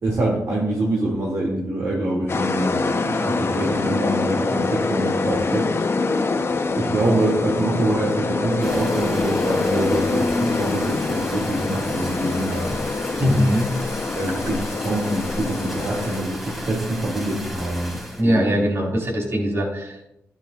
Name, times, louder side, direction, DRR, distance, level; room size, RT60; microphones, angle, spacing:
voice 1, 0.0-5.7 5.9-6.1 6.7-12.8 13.2-13.4 14.2-18.5, right 1 dB, 65° right, -5 dB, 2.5 m, -25 dB
sound 1, 2.3-16.2, left 3 dB, 45° left, 0.9 m, -25 dB
sound 2, 8.6-18.2, equal, 5° right, 3.1 m, -34 dB
voice 2, 13.2-13.7 18.2-20.1, equal, 50° right, -1 dB, 4.4 m, -21 dB
12.5 x 10.5 x 2.5 m, 0.84 s
cardioid pair, 60°, 6 cm